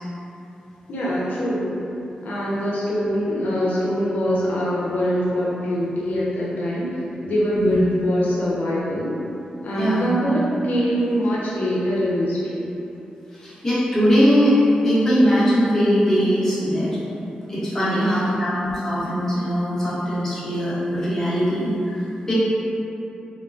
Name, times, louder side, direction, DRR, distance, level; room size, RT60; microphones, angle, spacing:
voice 1, 0.9-1.8 2.2-9.1 9.6-12.7 17.8-18.3, equal, 80° left, -7 dB, 0.5 m, -23 dB
voice 2, 9.7-10.1 13.4-14.6 14.8-16.9 17.5-21.7 22.0-22.3, equal, 15° left, -12 dB, 0.8 m, -20 dB
2.9 x 2.1 x 2.5 m, 2.9 s
wide cardioid pair, 145°, 3 cm